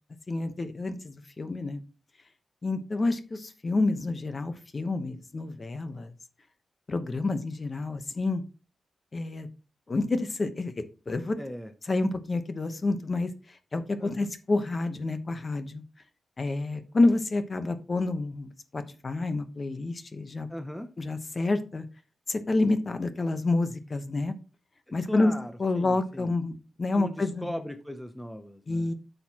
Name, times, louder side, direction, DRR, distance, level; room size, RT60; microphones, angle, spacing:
voice 1, 0.3-1.8 2.6-6.1 6.9-8.4 9.1-9.5 9.9-11.4 11.9-13.3 13.7-15.8 16.4-20.5 21.0-21.8 22.3-24.3 24.9-25.3 25.6-27.5 28.7-28.9, left 2 dB, 35° left, 9 dB, 1.0 m, -28 dB
voice 2, 11.4-11.7 14.0-14.3 20.5-20.9 25.1-26.3 26.9-28.9, equal, 5° left, 8 dB, 0.7 m, -39 dB
10.0 x 6.8 x 2.9 m, 0.33 s
wide cardioid pair, 125°, 0 cm